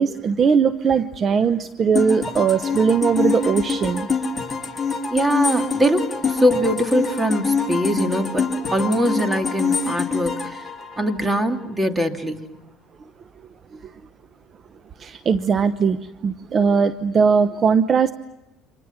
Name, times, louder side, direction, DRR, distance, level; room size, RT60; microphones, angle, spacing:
voice 1, 0.0-4.1 15.0-16.0 16.2-18.1, right 6 dB, 35° right, 12 dB, 0.9 m, -19 dB
sound 1, 1.9-11.7, left 5 dB, 20° left, 3.4 m, -25 dB
voice 2, 5.1-10.6 11.0-12.4, equal, 10° right, 5 dB, 2.7 m, -22 dB
29.5 x 26.5 x 5.9 m, 0.96 s
cardioid pair, 110°, 0 cm